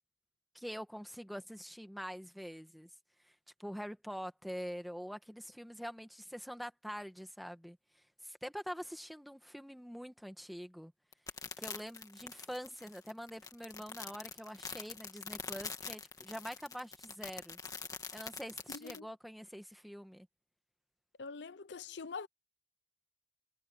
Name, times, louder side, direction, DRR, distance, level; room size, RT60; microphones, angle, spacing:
voice 1, 0.5-2.9 3.3-3.4 3.6-7.8 8.2-10.9 11.6-17.6 18.1-20.3, equal, ahead, 1.4 m, -45 dB
sound 1, 11.1-19.0, left 5 dB, 20° left, 1.9 m, -44 dB
voice 2, 18.7-19.1 21.2-22.3, left 5 dB, 75° left, 0.6 m, -44 dB
head